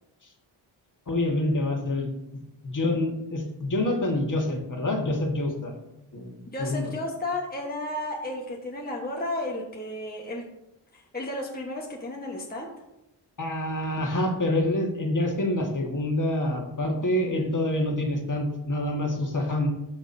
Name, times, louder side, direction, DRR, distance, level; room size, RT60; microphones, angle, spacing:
voice 1, 1.1-2.1 2.6-5.7 6.1-6.3 6.6-6.9 13.4-19.7, left 1 dB, 40° left, 1 dB, 1.7 m, -26 dB
voice 2, 6.5-10.5 10.9-12.7, left 1 dB, 20° left, -1 dB, 1.2 m, -33 dB
12.5 x 6.2 x 2.7 m, 0.90 s
cardioid pair, 60°, 47 cm